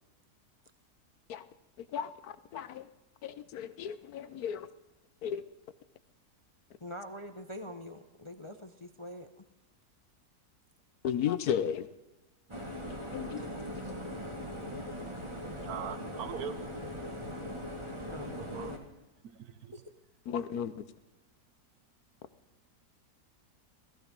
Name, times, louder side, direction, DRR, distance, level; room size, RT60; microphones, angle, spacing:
voice 1, 1.9-2.9 3.2-4.7 5.2-5.4 11.0-11.9 13.1-13.4 20.3-20.8, left 8 dB, 70° left, 14 dB, 1.2 m, -34 dB
voice 2, 6.8-9.4 18.0-18.4 19.7-19.8, left 1 dB, 30° left, 7 dB, 0.6 m, -44 dB
sound 1, 12.5-18.8, equal, 20° right, 1.9 m, -40 dB
voice 3, 15.6-16.6 18.5-18.8 19.2-19.7, right 7 dB, 70° right, 12 dB, 1.3 m, -40 dB
17.0 x 15.0 x 5.3 m, 1.1 s
omnidirectional pair, 1.7 m